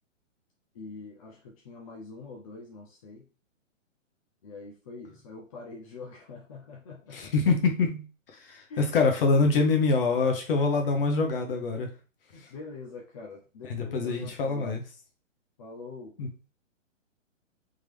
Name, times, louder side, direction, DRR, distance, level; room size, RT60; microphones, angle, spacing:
voice 1, 0.7-3.3 4.4-7.3 8.7-8.9 12.3-14.8 15.6-16.1, left 3 dB, 30° left, -1 dB, 0.6 m, -44 dB
voice 2, 7.1-8.1 8.3-11.9 13.7-14.8 16.2-16.3, left 4 dB, 45° left, 4 dB, 1.1 m, -25 dB
3.7 x 2.8 x 3.4 m, 0.34 s
hypercardioid pair, 145°, 39 cm